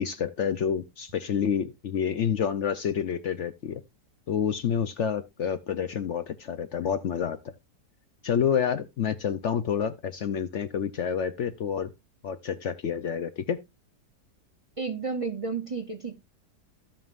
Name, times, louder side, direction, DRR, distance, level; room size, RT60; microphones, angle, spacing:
voice 1, 0.0-3.8 4.3-7.4 8.2-11.9 12.2-13.6, left 8 dB, 65° left, 0.7 m, -28 dB
voice 2, 14.8-16.1, right 4 dB, 40° right, 0.5 m, -32 dB
16.0 x 5.4 x 2.4 m
omnidirectional pair, 1.8 m